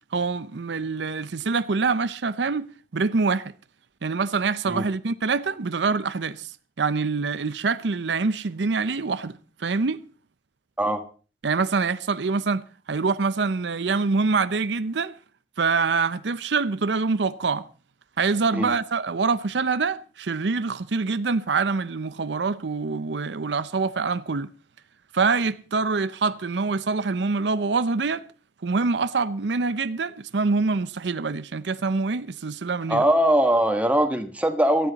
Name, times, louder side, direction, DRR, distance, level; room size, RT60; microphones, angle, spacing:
voice 1, 0.1-3.5 4.0-6.5 6.8-10.0 11.4-12.6 12.9-15.1 15.6-17.6 18.2-24.5 25.1-28.2 28.6-33.0, right 4 dB, 75° right, 0.6 m, -25 dB
voice 2, 32.9-34.9, right 1 dB, 10° right, 1.5 m, -21 dB
17.5 x 13.5 x 4.1 m
head